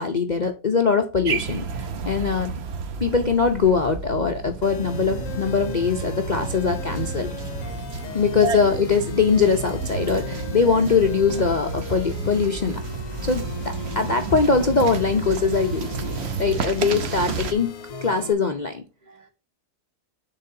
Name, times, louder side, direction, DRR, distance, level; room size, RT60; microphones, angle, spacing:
voice 1, 0.0-2.6 3.0-7.4 8.1-12.8 13.2-16.0 16.4-18.8, left 5 dB, 45° left, 0.6 m, -22 dB
sound 1, 1.2-17.5, right 5 dB, 50° right, 0.9 m, -31 dB
sound 2, 4.6-18.3, left 6 dB, 60° left, 1.1 m, -37 dB
voice 2, 5.0-5.7 7.6-8.6 13.2-13.3 16.2-16.6 17.9-18.3 19.0-19.3, right 4 dB, 70° right, 1.6 m, -36 dB
10.5 x 4.2 x 2.7 m
omnidirectional pair, 1.7 m